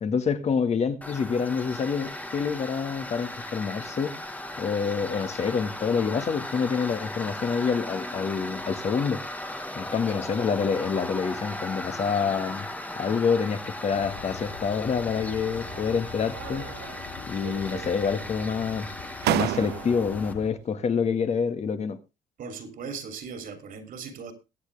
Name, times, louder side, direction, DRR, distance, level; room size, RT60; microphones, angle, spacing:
voice 1, 0.0-4.2 4.6-9.2 9.8-12.7 13.0-16.7 17.3-18.9 19.3-22.0, left 6 dB, 40° left, 1.7 m, -27 dB
Tools, 1.0-20.3, left 1 dB, 10° left, 1.4 m, -37 dB
sound 1, 13.9-20.5, left 7 dB, 75° left, 2.8 m, -43 dB
sound 2, 15.4-16.0 16.3-17.1 17.4-18.2 18.8-18.9 19.2-20.2, right 15 dB, 75° right, 0.7 m, -32 dB
voice 2, 22.4-24.3, right 5 dB, 55° right, 3.1 m, -38 dB
22.0 x 8.3 x 3.4 m
cardioid pair, 110°, 17 cm